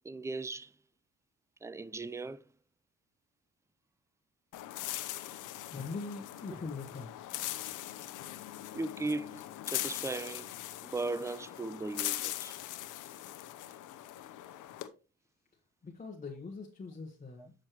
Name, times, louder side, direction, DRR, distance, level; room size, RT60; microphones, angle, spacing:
voice 1, 0.0-0.7 1.6-2.4 8.7-10.5 10.8-12.5 17.4-17.5, right 3 dB, 10° right, 0.4 m, -37 dB
sound 1, 4.5-14.9, left 14 dB, 85° left, 0.8 m, -41 dB
voice 2, 5.7-7.5 15.8-17.5, left 4 dB, 25° left, 1.3 m, -42 dB
8.4 x 6.4 x 3.1 m
cardioid pair, 90°, 30 cm